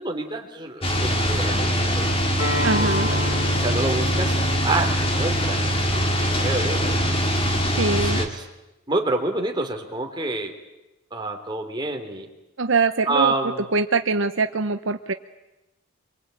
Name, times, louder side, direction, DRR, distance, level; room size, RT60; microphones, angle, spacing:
voice 1, 0.0-2.1 2.8-3.2 3.6-5.6 6.4-7.0 7.9-8.4 8.9-10.5 11.1-12.3 13.1-13.6, right 2 dB, 20° right, 3 dB, 3.1 m, -28 dB
sound 1, 0.8-8.3, equal, 25° left, 2.5 m, -23 dB
Acoustic guitar, 2.4-7.6, left 1 dB, 80° left, 7.8 m, -32 dB
voice 2, 2.6-3.1 7.8-8.2 12.6-13.3 13.7-15.1, right 4 dB, 65° right, 9 dB, 0.9 m, -23 dB
26.0 x 23.5 x 9.0 m, 0.99 s
head